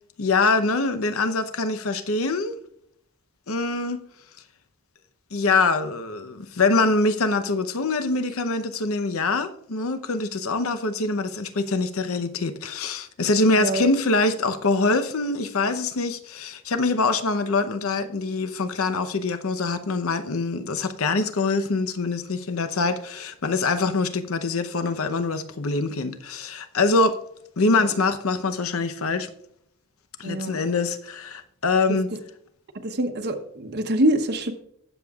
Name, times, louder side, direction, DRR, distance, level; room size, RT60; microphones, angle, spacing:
voice 1, 0.2-2.5 3.5-4.1 5.3-27.2 27.6-29.3 30.2-32.1, left 3 dB, 85° left, 0.8 m, -24 dB
voice 2, 13.6-13.9 27.8-27.9 30.2-30.6 32.8-34.5, right 1 dB, 50° right, 0.9 m, -25 dB
19.0 x 7.0 x 2.4 m
head